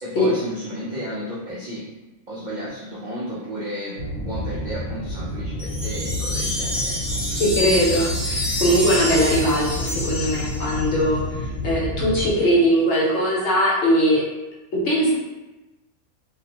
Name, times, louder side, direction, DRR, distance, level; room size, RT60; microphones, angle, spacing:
voice 1, 0.0-1.9 2.3-7.0, equal, 60° right, -7 dB, 0.4 m, -33 dB
sound 1, 4.0-12.3, left 1 dB, 85° left, 1.0 m, -29 dB
sound 2, 5.6-11.0, left 1 dB, ahead, 0.4 m, -28 dB
voice 2, 7.4-14.2 14.7-15.1, equal, 60° left, -6 dB, 1.0 m, -20 dB
2.5 x 2.0 x 2.7 m, 1.1 s
omnidirectional pair, 1.4 m